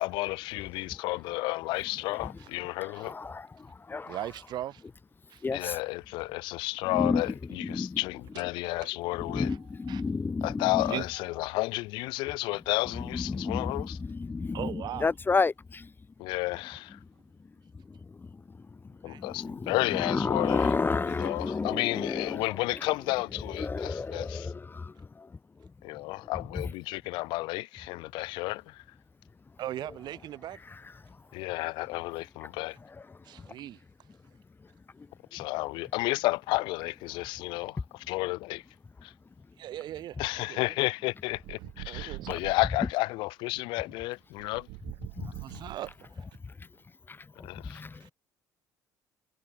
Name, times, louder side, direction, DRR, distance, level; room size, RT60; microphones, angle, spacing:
voice 1, 0.0-3.1 5.5-7.3 7.8-9.5 10.4-13.8 16.2-17.0 19.0-20.6 21.2-24.3 25.8-28.8 31.3-32.8 35.3-37.8 38.1-38.6 39.0-39.1 40.2-44.7 47.4-47.8, left 21 dB, 80° left, 0.6 m, -32 dB
voice 2, 0.7-1.3 1.6-4.4 5.2-5.8 6.8-8.0 9.2-11.0 12.8-16.1 16.9-26.7 29.2-35.5 37.1-37.8 39.0-39.6 40.1-40.3 42.0-42.4 42.8-42.9 45.1-48.1, left 4 dB, 25° left, 1.5 m, -35 dB
voice 3, 4.1-4.8 5.3-5.4 8.6-8.9 9.9-10.0 10.8-11.0 14.5-15.0 19.1-19.2 29.6-30.6 33.2-33.8 39.6-40.2 40.5-40.6 41.9-42.4 45.2-45.9 48.0-48.1, right 13 dB, 65° right, 1.3 m, -38 dB
sound 1, 41.3-42.9 44.4-46.2, right 26 dB, 85° right, 2.4 m, -43 dB
supercardioid pair, 75°, 8 cm